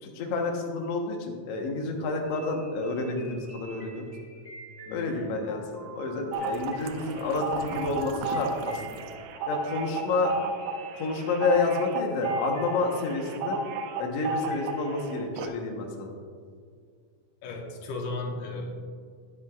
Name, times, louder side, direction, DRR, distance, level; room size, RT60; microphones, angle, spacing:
voice 1, 0.0-4.0 4.9-9.0 9.5-10.3 10.9-13.6 14.0-16.1, left 3 dB, 60° left, 2 dB, 2.0 m, -29 dB
sound 1, 2.2-15.2, right 1 dB, 10° left, 1.9 m, -49 dB
voice 2, 4.9-5.4 10.2-10.3 17.4-18.8, left 2 dB, 85° left, 1 dB, 2.5 m, -36 dB
sound 2, 6.3-15.0 15.4-15.5, right 4 dB, 85° right, 2.2 m, -33 dB
18.5 x 7.5 x 2.4 m, 2.1 s
omnidirectional pair, 3.5 m